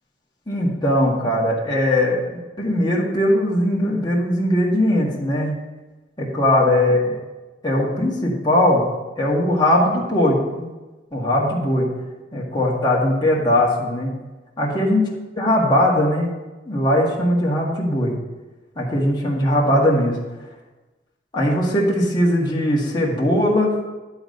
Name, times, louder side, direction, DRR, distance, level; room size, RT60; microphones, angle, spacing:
voice 1, 0.5-5.5 6.2-7.1 7.6-8.9 9.2-10.7 11.1-11.9 12.3-14.2 14.6-15.1 15.4-16.3 16.7-18.1 18.8-20.2 21.3-23.7, left 1 dB, 25° left, -4 dB, 1.9 m, -19 dB
11.5 x 4.1 x 6.5 m, 1.2 s
head